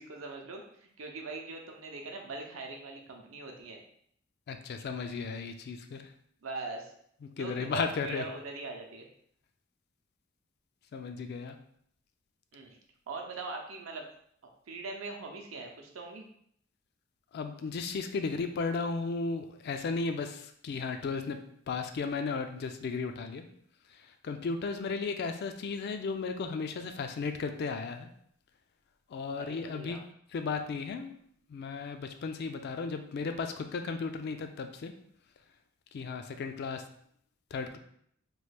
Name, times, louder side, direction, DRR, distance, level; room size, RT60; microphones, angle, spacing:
voice 1, 0.0-3.8 6.4-6.9 7.3-9.1 12.5-12.8 13.1-14.1 14.7-16.3 29.4-30.0, right 3 dB, 75° right, 2 dB, 0.6 m, -41 dB
voice 2, 4.5-6.0 7.4-8.2 10.9-11.6 17.3-21.4 21.7-23.4 24.2-28.1 29.1-30.0 30.3-31.1 31.5-34.9 35.9-36.8 37.5-37.8, left 4 dB, 50° left, 7 dB, 0.3 m, -35 dB
3.0 x 2.3 x 3.3 m, 0.67 s
head